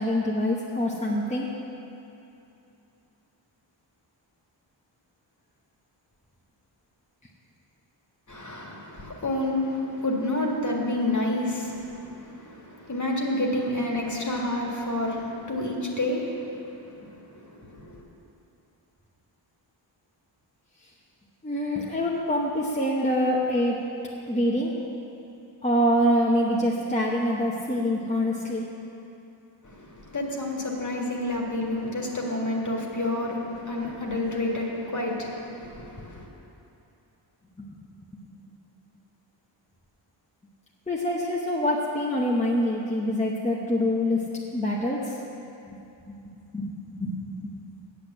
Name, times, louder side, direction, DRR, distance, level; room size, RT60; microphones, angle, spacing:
voice 1, 0.0-1.5 21.4-23.8 24.3-24.7 25.6-28.7 37.6-37.7 40.9-44.3 44.5-45.2 45.7-45.8 46.5-47.6, equal, 15° left, -4 dB, 1.1 m, -25 dB
voice 2, 8.3-18.0 29.6-36.3, left 1 dB, 40° left, -1 dB, 1.9 m, -29 dB
8.3 x 8.1 x 7.9 m, 2.8 s
wide cardioid pair, 80°, 46 cm